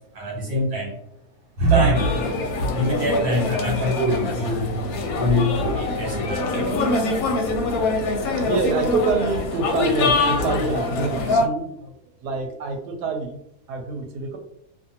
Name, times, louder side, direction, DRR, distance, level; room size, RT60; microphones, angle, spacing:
voice 1, 0.1-0.9 1.6-2.2 2.7-4.8 5.2-6.8, equal, 75° right, -1 dB, 1.5 m, -23 dB
sound 1, 1.9-11.5, left 3 dB, 70° left, 1.0 m, -24 dB
voice 2, 8.5-13.4 13.7-14.4, right 4 dB, 90° right, 4 dB, 1.2 m, -26 dB
2.5 x 2.5 x 2.7 m, 0.76 s
omnidirectional pair, 1.7 m